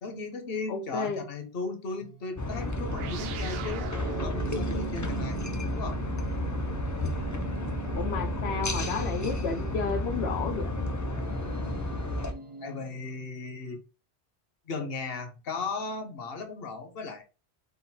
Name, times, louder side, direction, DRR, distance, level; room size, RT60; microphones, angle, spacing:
voice 1, 0.0-3.9 4.2-5.4 5.7-6.0 8.1-8.6 12.6-13.8 14.7-17.2, left 4 dB, 65° left, 6 dB, 1.1 m, -36 dB
voice 2, 0.7-1.2 8.0-10.8, left 5 dB, 80° left, 3 dB, 0.9 m, -32 dB
sound 1, 2.0-13.4, right 1 dB, 35° right, 0.7 m, -46 dB
sound 2, 2.4-12.3, left 1 dB, 25° left, 0.4 m, -32 dB
sound 3, 2.8-11.6, right 8 dB, 70° right, 0.8 m, -40 dB
4.0 x 2.5 x 4.1 m, 0.31 s
omnidirectional pair, 1.1 m